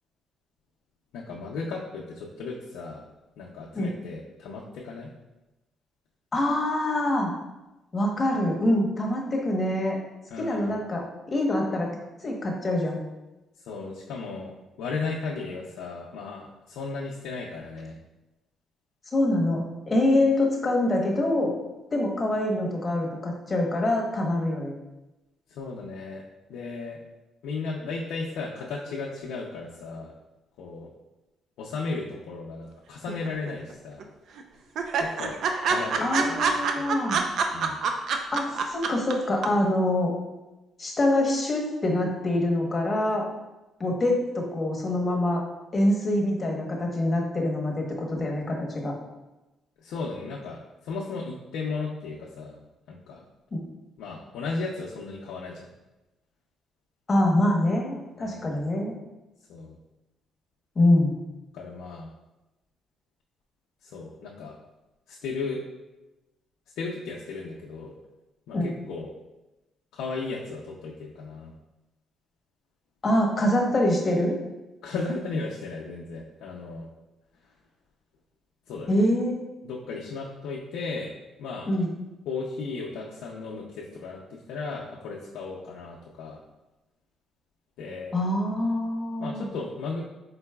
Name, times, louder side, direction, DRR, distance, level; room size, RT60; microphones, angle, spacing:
voice 1, 1.1-3.0 3.4-5.1 10.3-10.8 13.6-18.0 20.2-20.3 25.5-26.2 26.5-27.0 27.4-30.1 30.6-30.9 31.6-34.0 35.0-36.9 37.5-37.8 49.8-52.6 52.9-53.2 54.0-55.7 58.2-58.6 59.5-59.8 61.5-62.1 63.8-64.5 65.1-65.6 66.8-67.9 68.5-69.1 69.9-71.5 74.8-76.9 78.7-79.0 79.6-81.1 81.4-81.7 82.3-86.4 87.8-88.2 89.2-90.1, left 4 dB, 90° left, -4 dB, 0.5 m, -35 dB
voice 2, 6.3-7.3 7.9-10.0 10.4-11.9 12.2-13.0 19.1-21.5 21.9-24.8 36.0-37.2 38.3-40.1 40.8-43.2 43.8-45.4 45.7-48.9 53.5-53.6 57.1-58.9 60.8-61.2 68.5-68.7 73.0-74.4 78.9-79.5 81.7-81.9 88.1-89.5, left 1 dB, 30° left, 0 dB, 0.9 m, -25 dB
sound 1, 33.1-33.7 34.0-34.1 34.4-34.5 34.8-39.1 39.4-39.5, right 5 dB, 70° right, 0.4 m, -26 dB
4.6 x 3.9 x 2.2 m, 1.0 s
cardioid pair, 90°, 0 cm